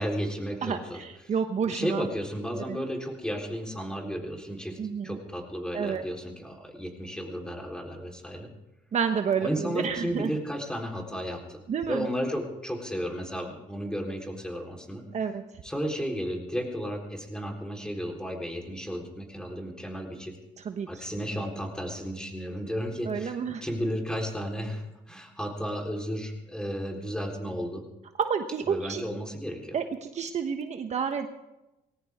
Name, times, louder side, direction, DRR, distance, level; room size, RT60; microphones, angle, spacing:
voice 1, 0.0-1.0 1.6-4.8 5.0-8.5 9.4-11.6 11.9-15.0 15.6-20.4 20.9-27.8 28.7-29.8, equal, 5° left, 0 dB, 3.9 m, -33 dB
voice 2, 0.6-2.1 2.7-2.8 4.8-5.2 5.7-6.0 8.9-10.3 11.7-12.1 15.1-15.4 20.6-20.9 23.0-23.6 28.2-29.0 29.7-31.3, right 6 dB, 45° right, 6 dB, 1.2 m, -29 dB
20.5 x 18.0 x 3.7 m, 0.96 s
cardioid pair, 110°, 17 cm